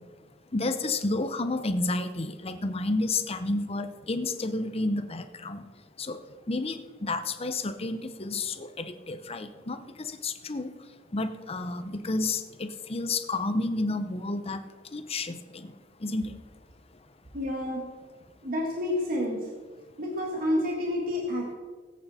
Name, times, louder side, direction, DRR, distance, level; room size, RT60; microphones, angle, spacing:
voice 1, 0.5-5.6 6.0-6.2 6.5-10.7 11.1-14.6 14.9-15.7 16.0-16.3, left 2 dB, 35° left, 9 dB, 0.8 m, -31 dB
voice 2, 17.3-17.8 18.4-19.4 20.0-21.5, left 1 dB, 50° right, -1 dB, 1.8 m, -29 dB
18.5 x 8.5 x 4.3 m, 1.5 s
head